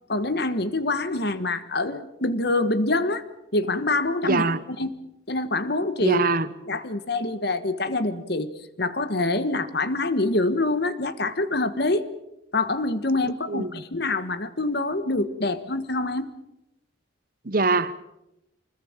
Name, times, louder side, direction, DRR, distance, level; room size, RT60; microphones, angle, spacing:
voice 1, 0.1-3.2 3.5-4.5 4.8-4.9 5.3-6.2 6.6-8.5 8.8-12.1 12.5-16.3, left 2 dB, 55° left, 1.5 m, -25 dB
voice 2, 4.2-4.6 6.0-6.5 13.5-13.8 17.4-17.9, right 3 dB, 45° right, 1.0 m, -23 dB
25.0 x 21.0 x 7.4 m
head